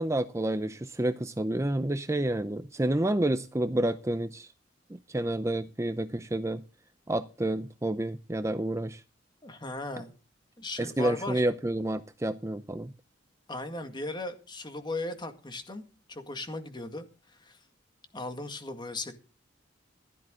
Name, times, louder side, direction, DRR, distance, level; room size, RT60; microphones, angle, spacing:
voice 1, 0.0-4.5 4.9-6.6 7.1-9.0 10.8-12.9, right 1 dB, 15° right, 0.6 m, -29 dB
voice 2, 9.4-10.1 10.6-11.4 13.5-15.8 16.1-17.6 18.1-19.1, left 2 dB, 25° left, 1.9 m, -37 dB
15.5 x 12.0 x 3.8 m
head